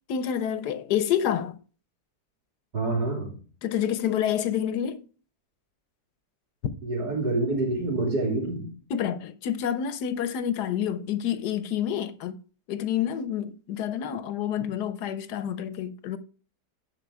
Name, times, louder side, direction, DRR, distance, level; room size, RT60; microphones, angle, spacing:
voice 1, 0.1-1.5 3.6-5.0 8.9-12.4 12.7-16.2, left 9 dB, 80° left, 1.4 m, -28 dB
voice 2, 2.7-3.4 6.8-8.7, right 2 dB, 80° right, 3.6 m, -27 dB
10.5 x 5.3 x 4.7 m
omnidirectional pair, 1.7 m